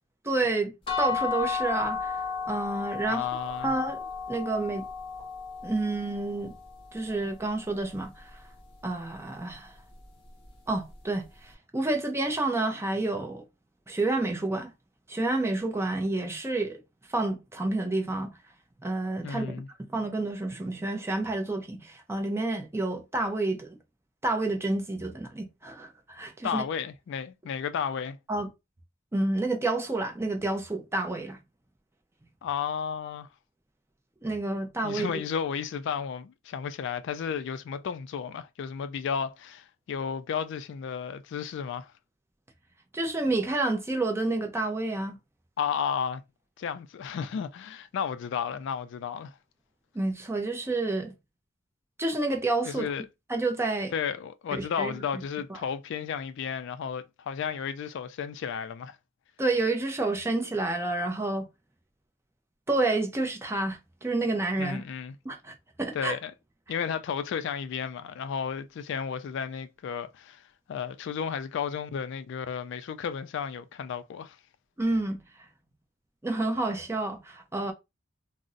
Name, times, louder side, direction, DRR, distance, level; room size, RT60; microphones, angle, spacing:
voice 1, 0.2-2.2 2.5-3.3 3.6-4.9 5.6-6.5 6.9-8.4 8.8-9.7 10.7-13.4 13.9-14.7 15.1-16.8 17.1-18.3 18.8-19.5 19.9-23.8 24.2-26.6 28.3-28.5 29.1-31.4 34.2-35.2 42.9-45.2 49.9-51.1 52.0-52.9 53.3-53.9 54.5-55.0 55.5-55.6 59.4-61.5 62.7-64.8 65.2-66.2 74.8-75.2 76.2-77.7, right 2 dB, 15° right, 0.5 m, -29 dB
sound 1, 0.9-6.7, left 6 dB, 25° left, 1.0 m, -33 dB
voice 2, 3.1-3.7 19.2-19.7 26.4-28.2 32.4-33.3 34.8-41.9 45.6-46.2 46.6-49.4 52.7-53.1 53.9-59.0 64.6-65.2 65.9-66.3 66.7-74.4, left 7 dB, 60° left, 0.3 m, -33 dB
2.5 x 2.0 x 3.8 m
head